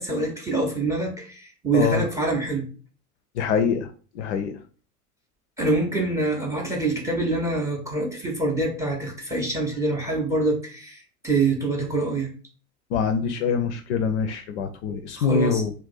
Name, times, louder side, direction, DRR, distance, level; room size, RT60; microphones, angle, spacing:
voice 1, 0.0-2.6 5.6-12.3 14.9-15.6, right 2 dB, 5° right, 2 dB, 0.5 m, -25 dB
voice 2, 3.3-3.9 4.1-4.6 12.9-15.7, left 6 dB, 50° left, 7 dB, 0.4 m, -24 dB
2.5 x 2.2 x 3.8 m, 0.39 s
figure-of-eight pair, 85°, 46 cm